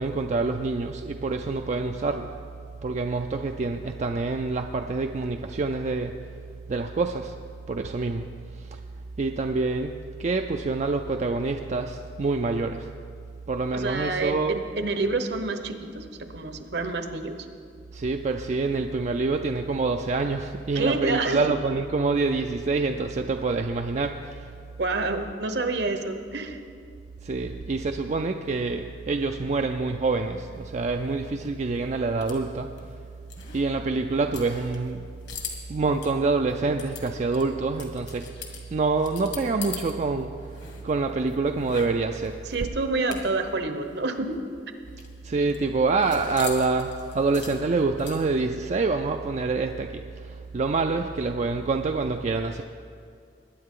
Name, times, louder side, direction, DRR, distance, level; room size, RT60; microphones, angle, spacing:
voice 1, 0.0-2.4 2.8-6.2 6.7-7.3 7.7-8.3 8.7-8.8 9.2-9.9 10.2-12.9 13.5-14.6 17.9-24.5 27.2-32.7 33.5-35.1 35.7-38.3 38.7-40.3 40.8-42.3 45.2-52.6, right 3 dB, 40° right, 5 dB, 0.4 m, -26 dB
voice 2, 13.7-17.3 20.7-21.5 24.8-26.6 42.5-44.4, right 3 dB, 65° right, 7 dB, 0.9 m, -28 dB
sound 1, 30.5-39.9 40.2-43.5 43.8-43.9 44.2-48.5, left 6 dB, 65° left, 1.9 m, -42 dB
20.5 x 9.6 x 3.8 m, 2.3 s
head